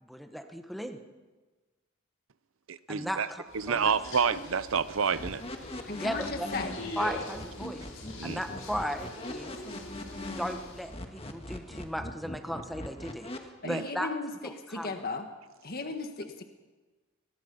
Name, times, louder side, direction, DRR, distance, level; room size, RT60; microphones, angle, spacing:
voice 1, 0.0-1.0 2.9-3.9 6.0-6.5 7.0-7.8 8.2-9.6 10.4-14.1 14.4-14.9, equal, ahead, 1.3 m, -36 dB
voice 2, 2.7-3.3 3.5-5.4 8.2-8.4 13.6-13.8, right 6 dB, 65° right, 0.7 m, -28 dB
sound 1, 3.5-10.9, left 2 dB, 85° left, 7.2 m, -43 dB
sound 2, 5.1-13.4, left 1 dB, 30° left, 1.8 m, -41 dB
voice 3, 5.9-6.9 13.6-14.3 14.7-15.3 15.6-16.4, left 3 dB, 45° left, 1.6 m, -36 dB
23.5 x 20.5 x 5.5 m
head